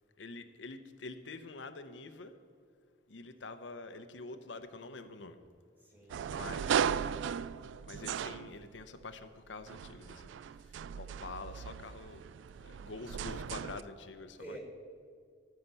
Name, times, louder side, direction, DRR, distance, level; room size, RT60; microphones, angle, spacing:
voice 1, 0.2-2.3 3.1-5.4 6.3-6.8 7.9-10.3 10.9-12.2 12.6-14.6, left 3 dB, 85° left, 9 dB, 0.7 m, -46 dB
voice 2, 5.8-6.9 14.4-14.6, right 1 dB, 10° right, -1 dB, 2.2 m, -50 dB
sound 1, 6.1-9.0 9.6-13.8, right 8 dB, 85° right, 0.3 m, -37 dB
14.0 x 5.9 x 6.7 m, 2.1 s
head